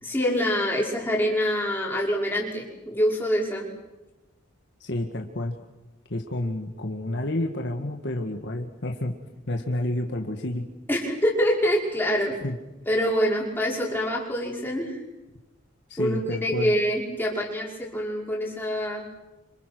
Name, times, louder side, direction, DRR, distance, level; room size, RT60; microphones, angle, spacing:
voice 1, 0.0-3.7 10.9-12.4 12.9-15.0 16.0-19.1, equal, 10° left, -3 dB, 5.7 m, -25 dB
voice 2, 4.8-5.5 6.1-9.1 9.5-10.7 12.4-12.6 15.9-16.7, left 1 dB, 55° left, 3 dB, 1.7 m, -29 dB
28.0 x 26.5 x 6.2 m, 1.0 s
head